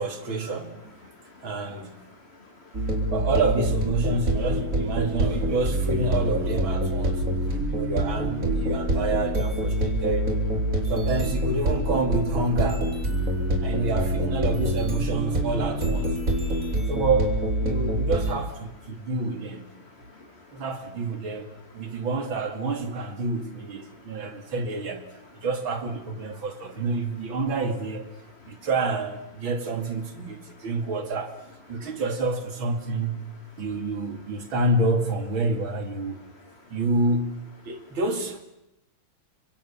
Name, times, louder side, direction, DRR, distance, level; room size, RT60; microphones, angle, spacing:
voice 1, 0.0-1.0 1.4-2.1 2.8-10.4 10.9-12.9 13.6-16.2 16.9-19.8 20.5-25.1 25.4-28.1 28.5-31.4 31.7-33.2 33.6-36.2 36.7-38.4, right 3 dB, 75° right, 3.3 m, -28 dB
voice 2, 1.1-1.5 2.1-3.1 7.4-7.8 10.7-10.9 13.2-13.7 16.2-16.9 19.8-20.6 21.8-22.0 23.9-24.3 28.4-28.7 30.5-30.7, left 2 dB, 30° left, 2.6 m, -52 dB
sound 1, 2.7-18.3, equal, 40° right, 4.3 m, -26 dB
30.0 x 25.5 x 7.3 m
omnidirectional pair, 2.2 m